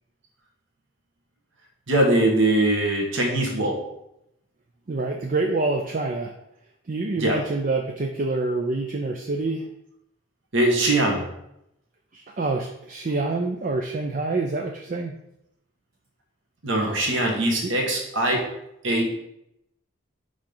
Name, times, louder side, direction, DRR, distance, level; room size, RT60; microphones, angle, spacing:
voice 1, 1.9-3.8 7.2-7.4 10.5-11.3 16.6-18.5 18.8-19.2, right 1 dB, 60° right, 0 dB, 1.5 m, -22 dB
voice 2, 4.9-6.3 6.9-9.7 12.1-15.2 17.6-17.7, right 3 dB, 40° right, 2 dB, 0.4 m, -26 dB
5.2 x 3.8 x 5.5 m, 0.81 s
head